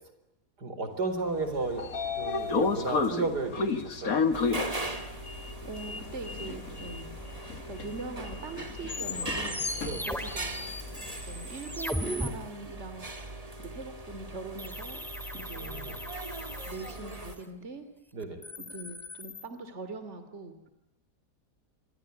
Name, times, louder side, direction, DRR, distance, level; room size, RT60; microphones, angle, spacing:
voice 1, 0.6-1.9 2.1-4.3 9.8-10.1 15.5-16.0 18.1-18.4, right 3 dB, 75° right, 9 dB, 4.9 m, -33 dB
Sliding door, 1.3-11.5, left 4 dB, 60° left, 2.2 m, -33 dB
sound 1, 4.3-17.4, right 2 dB, 20° right, 2.4 m, -40 dB
voice 2, 5.6-7.3 7.7-9.6 10.0-13.1 13.6-15.1 15.3-16.0 16.7-17.8 18.6-20.6, right 3 dB, 45° right, 10 dB, 3.0 m, -42 dB
sound 2, 9.4-12.3 14.6-17.4 18.2-19.5, equal, ahead, 2.7 m, -38 dB
28.0 x 25.5 x 8.4 m, 0.88 s
omnidirectional pair, 1.8 m